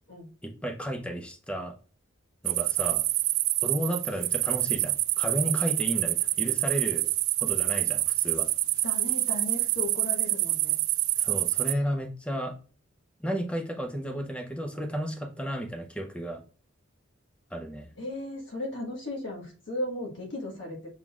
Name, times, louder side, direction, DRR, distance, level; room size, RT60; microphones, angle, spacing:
voice 1, 0.4-1.7 2.4-3.0 3.6-7.1 7.4-8.5 11.2-12.5 13.2-16.4 17.5-17.9, equal, 5° left, 5 dB, 0.6 m, -33 dB
sound 1, 2.5-11.7, right 18 dB, 85° right, 0.3 m, -27 dB
voice 2, 8.8-10.8 18.0-20.9, left 1 dB, 60° left, -1 dB, 1.3 m, -36 dB
6.1 x 3.7 x 2.3 m, 0.39 s
head